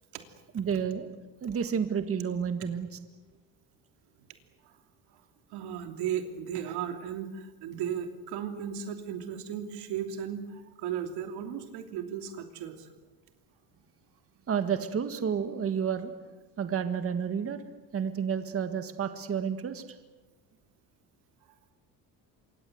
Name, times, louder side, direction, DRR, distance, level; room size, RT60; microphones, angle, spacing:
voice 1, 0.5-1.1 1.4-3.0 14.5-16.1 16.6-17.6 17.9-19.8, right 7 dB, 35° right, 9 dB, 1.8 m, -30 dB
voice 2, 5.5-12.9, right 8 dB, 90° right, 6 dB, 3.1 m, -36 dB
27.0 x 23.5 x 8.0 m, 1.2 s
cardioid pair, 130°, 38 cm